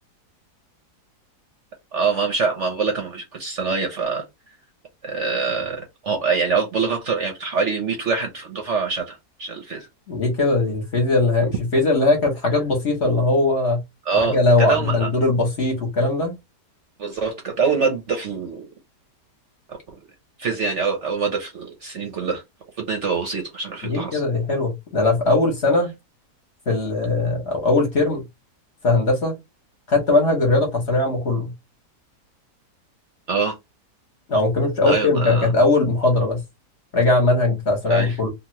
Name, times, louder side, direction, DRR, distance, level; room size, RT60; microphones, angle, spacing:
voice 1, 1.9-4.2 5.0-9.9 14.0-15.1 17.0-18.7 19.7-19.8 20.4-22.4 22.8-24.2 33.3-33.5 34.8-35.5 37.9-38.2, right 5 dB, 60° right, 0.8 m, -24 dB
voice 2, 10.1-13.8 14.1-16.3 23.8-25.9 26.7-28.2 28.8-29.3 29.9-31.5 34.3-36.4 36.9-38.3, left 2 dB, 45° left, 1.1 m, -20 dB
2.9 x 2.3 x 2.9 m
omnidirectional pair, 1.7 m